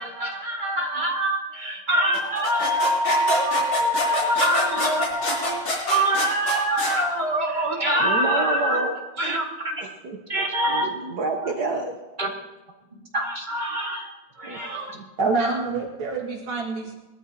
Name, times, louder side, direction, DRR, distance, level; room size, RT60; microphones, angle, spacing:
voice 1, 0.0-8.9 9.2-9.8 10.3-10.9 12.2-12.3 12.9-14.1 14.4-15.0, equal, 25° right, -2 dB, 2.2 m, -24 dB
sound 1, 2.1-7.0, left 1 dB, 85° left, 4.5 m, -26 dB
voice 2, 8.0-8.9 10.0-12.0 14.4-14.7 14.9-15.1, right 3 dB, 60° right, 3 dB, 1.5 m, -28 dB
voice 3, 15.2-16.9, right 3 dB, 80° right, -1 dB, 2.8 m, -26 dB
21.0 x 13.5 x 2.9 m, 1.1 s
omnidirectional pair, 2.2 m